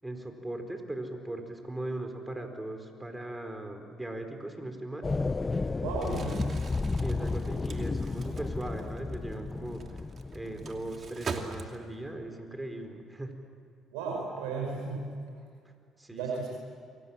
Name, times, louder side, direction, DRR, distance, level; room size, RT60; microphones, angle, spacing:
voice 1, 0.0-5.1 5.7-5.8 6.1-6.4 6.9-9.8 10.3-13.3 16.0-16.5, right 1 dB, 15° right, 6 dB, 4.9 m, -39 dB
sound 1, 5.0-11.2, left 3 dB, 25° left, 0.7 m, -33 dB
voice 2, 5.8-6.5 13.9-15.1 16.1-16.5, right 4 dB, 90° right, -1 dB, 5.5 m, -34 dB
Crumpling crinkling, 5.9-12.1, right 5 dB, 50° right, 2.7 m, -43 dB
29.0 x 24.0 x 7.6 m, 2.2 s
supercardioid pair, 65°, 0 cm